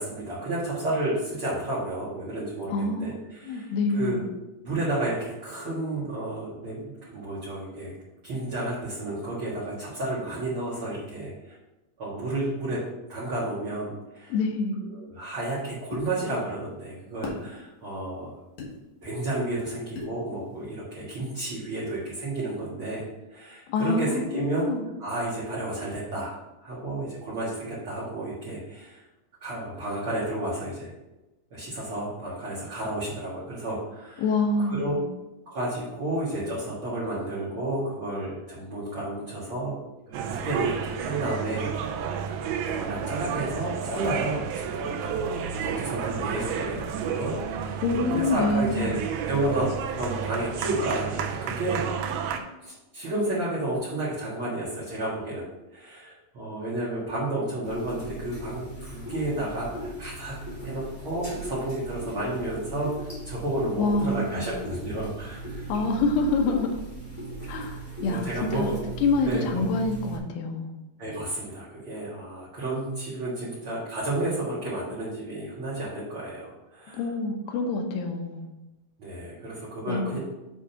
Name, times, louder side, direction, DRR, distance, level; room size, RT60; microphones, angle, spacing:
voice 1, 0.0-4.2 4.6-7.9 8.2-11.6 12.0-12.8 13.1-14.3 14.9-18.3 19.0-23.0 23.3-24.7 25.0-26.3 26.6-29.0 29.4-30.9 31.5-34.2 34.7-35.0 35.5-39.7 40.1-41.7 42.6-45.3 45.6-47.8 48.1-49.0 49.2-49.7 50.0-51.8 52.3-55.4 55.7-60.4 60.6-65.7 67.4-67.6 68.0-68.9 69.2-69.6 71.0-77.0 79.0-80.2, right 1 dB, 45° right, -8 dB, 2.0 m, -31 dB
voice 2, 2.7-3.2 3.4-4.2 14.3-14.8 23.7-24.8 34.2-35.1 47.8-49.0 63.8-64.5 65.7-66.7 67.5-70.8 76.9-78.5 79.9-80.2, left 3 dB, 75° left, 2 dB, 2.4 m, -26 dB
sound 1, 15.9-16.1 17.2-17.4 18.6-18.7 20.0-20.2, left 3 dB, 60° left, 2.3 m, -34 dB
sound 2, 40.1-52.4, right 7 dB, 80° right, 2.4 m, -31 dB
sound 3, 57.6-70.2, right 2 dB, 20° left, 1.1 m, -38 dB
8.6 x 3.7 x 5.7 m, 0.99 s
omnidirectional pair, 4.5 m